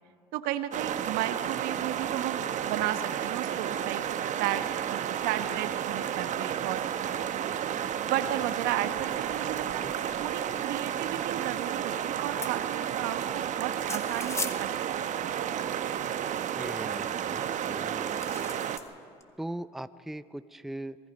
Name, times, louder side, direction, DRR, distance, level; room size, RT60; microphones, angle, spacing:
voice 1, 0.3-4.0 4.3-6.8 7.9-9.9 10.2-14.7 15.0-15.3, right 13 dB, 70° right, 10 dB, 1.2 m, -34 dB
sound 1, 0.7-18.8, right 9 dB, 50° right, 1.1 m, -32 dB
sound 2, 12.4-12.6 13.8-14.6 15.1-15.2 16.0-16.1 18.0-18.9 19.2-19.3, left 3 dB, 20° left, 1.6 m, -37 dB
voice 2, 16.6-17.4 17.7-18.6 19.4-21.0, right 1 dB, ahead, 13 dB, 0.6 m, -40 dB
26.5 x 19.5 x 5.3 m, 2.3 s
hypercardioid pair, 75°, 16 cm